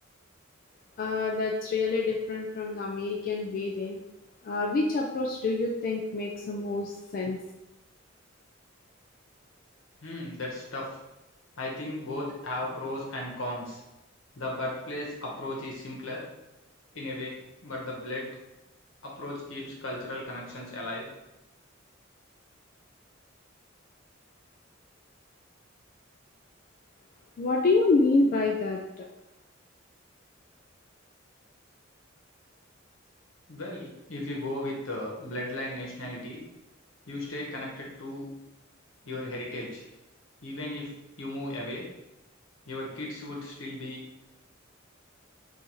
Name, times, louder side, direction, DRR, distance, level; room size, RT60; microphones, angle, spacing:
voice 1, 1.0-4.0 4.4-7.4 27.4-29.1, left 3 dB, 45° left, -1 dB, 0.3 m, -27 dB
voice 2, 10.0-10.9 11.6-13.8 14.3-16.2 16.9-18.3 19.0-21.1 33.5-36.4 37.1-38.3 39.0-39.8 40.4-40.9 41.2-41.8 42.6-44.0, left 1 dB, 80° left, -2 dB, 1.0 m, -36 dB
3.9 x 2.5 x 3.0 m, 0.96 s
head